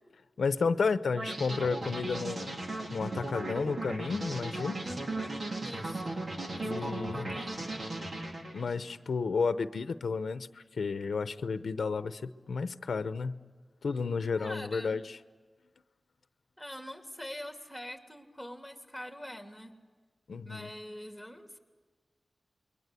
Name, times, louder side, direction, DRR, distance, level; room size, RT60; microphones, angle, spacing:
voice 1, 0.4-2.5 2.9-4.8 6.6-7.3 8.5-10.5 10.8-13.4 13.8-15.2 20.3-20.7, left 5 dB, 90° left, 11 dB, 0.8 m, -32 dB
sound 1, 1.2-8.8, right 2 dB, 65° right, 3.9 m, -37 dB
voice 2, 4.8-6.1 6.5-7.6 14.4-15.0 16.6-19.8 20.4-21.6, equal, ahead, 4 dB, 2.9 m, -44 dB
28.5 x 22.5 x 8.4 m, 1.4 s
wide cardioid pair, 80°, 0 cm